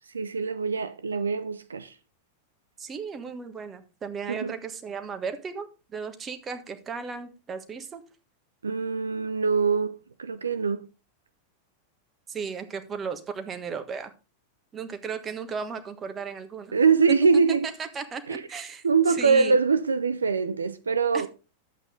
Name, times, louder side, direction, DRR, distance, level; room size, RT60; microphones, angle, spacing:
voice 1, 0.1-1.9 4.3-4.5 8.6-10.9 16.7-17.7 18.3-18.4 18.8-21.3, right 5 dB, 75° right, 0.6 m, -23 dB
voice 2, 2.8-8.0 12.3-14.1 14.7-16.8 17.3-17.4 17.8-19.6 21.1-21.3, right 5 dB, 20° right, 1.4 m, -35 dB
11.0 x 8.2 x 3.7 m
figure-of-eight pair, 90°, 0 cm